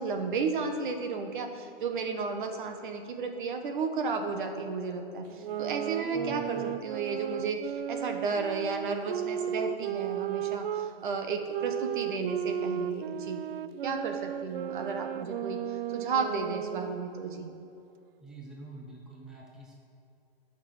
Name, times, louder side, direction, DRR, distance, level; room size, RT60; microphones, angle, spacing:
voice 1, 0.0-5.2 5.6-13.4 13.8-17.5, right 4 dB, 55° right, 5 dB, 1.4 m, -33 dB
sound 1, 5.3-10.9 11.5-17.1, right 11 dB, 70° right, 0.4 m, -35 dB
voice 2, 6.1-6.7 18.2-19.7, right 2 dB, ahead, -3 dB, 0.7 m, -46 dB
11.5 x 5.9 x 6.5 m, 2.7 s
hypercardioid pair, 160°, 30 cm